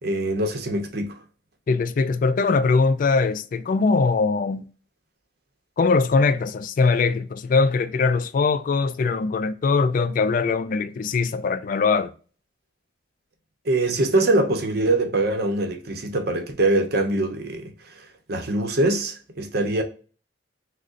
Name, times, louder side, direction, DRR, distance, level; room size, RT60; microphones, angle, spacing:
voice 1, 0.0-1.2 13.6-19.8, right 2 dB, 60° right, 0.8 m, -23 dB
voice 2, 1.7-4.6 5.8-12.1, left 4 dB, 50° left, 0.3 m, -21 dB
6.2 x 2.1 x 2.5 m
head